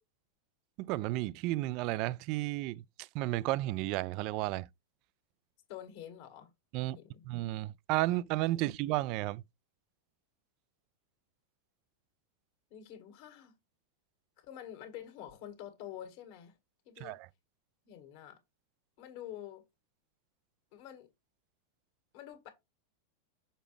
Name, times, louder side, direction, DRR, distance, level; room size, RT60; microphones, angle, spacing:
voice 1, 0.8-4.7 6.7-7.0 7.3-9.4 17.0-17.3, right 17 dB, 40° right, 0.3 m, -33 dB
voice 2, 5.7-6.5 6.8-7.3 12.7-13.5 14.4-16.6 16.8-17.2 17.8-18.4 19.0-19.6 20.7-21.1 22.1-22.5, left 11 dB, 50° left, 1.8 m, -47 dB
6.6 x 4.8 x 3.2 m
figure-of-eight pair, 90°, 0 cm